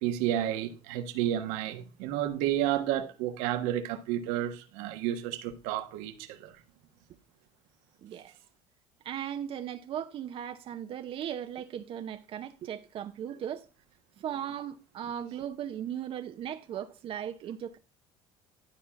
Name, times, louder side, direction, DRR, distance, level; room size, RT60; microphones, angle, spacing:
voice 1, 0.0-6.5, right 12 dB, 85° right, 1.3 m, -31 dB
voice 2, 8.0-8.3 9.0-13.7 14.2-17.8, right 9 dB, 55° right, 0.8 m, -37 dB
12.0 x 4.3 x 5.1 m
supercardioid pair, 90°, 11 cm